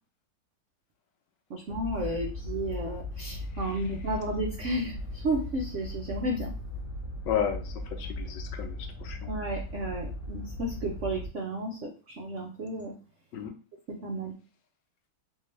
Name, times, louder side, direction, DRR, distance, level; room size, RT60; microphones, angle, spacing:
voice 1, 1.5-6.5 9.3-12.9 13.9-14.3, right 1 dB, 85° right, 0 dB, 0.6 m, -33 dB
sound 1, 1.7-11.3, left 1 dB, 60° left, 0.7 m, -38 dB
voice 2, 7.3-9.3 13.3-13.5, left 8 dB, 75° left, 6 dB, 1.2 m, -33 dB
3.6 x 2.7 x 3.2 m, 0.35 s
omnidirectional pair, 2.1 m